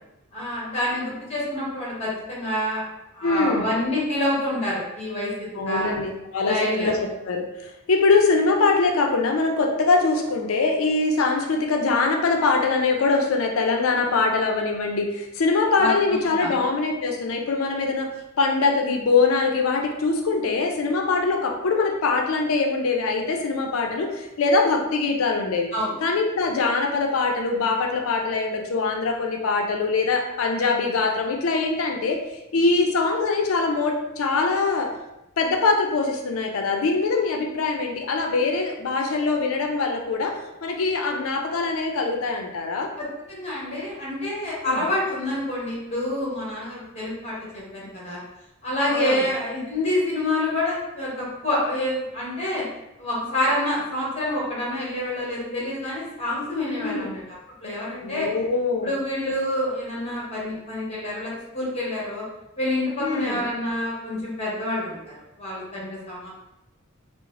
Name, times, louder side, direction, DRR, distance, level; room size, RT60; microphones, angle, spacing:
voice 1, 0.3-2.8 3.1-5.9 6.4-6.9 15.8-16.5 25.7-26.0 43.0-48.2 48.6-52.6 53.0-57.2 57.6-58.3 58.8-62.2 62.6-66.3, left 1 dB, 30° left, -6 dB, 1.2 m, -27 dB
voice 2, 3.2-3.7 5.6-18.1 18.4-25.7 26.0-32.2 32.5-34.9 35.4-42.9 44.7-44.8 48.9-49.2 56.8-57.2 58.0-58.9 63.0-63.4, left 3 dB, 85° left, 2 dB, 0.5 m, -23 dB
3.6 x 2.0 x 3.1 m, 0.90 s
head